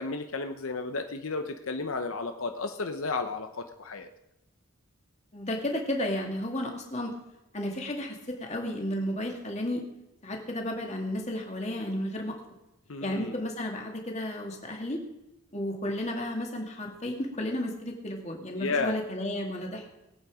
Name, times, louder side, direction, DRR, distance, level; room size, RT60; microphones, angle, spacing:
voice 1, 0.0-4.1 12.9-13.3 18.5-19.0, left 3 dB, 75° left, 7 dB, 0.8 m, -33 dB
voice 2, 5.3-7.1 7.5-9.8 10.2-12.4 13.0-15.0 15.5-20.0, left 1 dB, 30° left, 2 dB, 2.3 m, -33 dB
21.5 x 8.5 x 5.0 m, 0.96 s
head